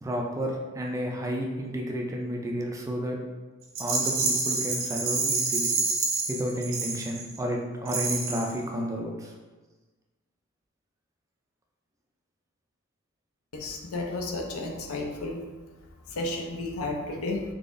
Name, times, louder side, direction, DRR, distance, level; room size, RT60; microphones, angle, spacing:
voice 1, 0.0-3.2 3.8-5.7 6.3-9.3, equal, 15° right, 0 dB, 0.3 m, -31 dB
Rattle, 3.7-7.4 7.9-8.6, right 4 dB, 60° right, 0.6 m, -28 dB
voice 2, 13.5-15.4 16.1-17.4, left 2 dB, 70° left, 2 dB, 0.6 m, -32 dB
3.9 x 2.8 x 2.5 m, 1.2 s
head